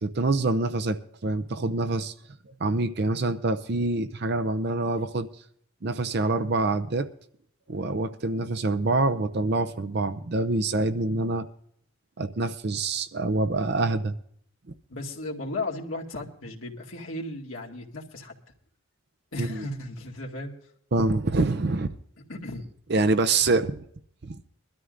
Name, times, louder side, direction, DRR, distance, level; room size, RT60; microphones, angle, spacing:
voice 1, 0.0-2.1 2.6-5.3 5.8-7.1 7.7-11.5 12.2-14.2 19.4-19.7 20.9-21.9 22.9-23.8 24.2-24.4, right 2 dB, 50° right, 0.6 m, -26 dB
voice 2, 14.9-18.3 19.3-20.5 22.3-22.7, left 2 dB, 75° left, 2.1 m, -35 dB
22.5 x 13.0 x 2.5 m
head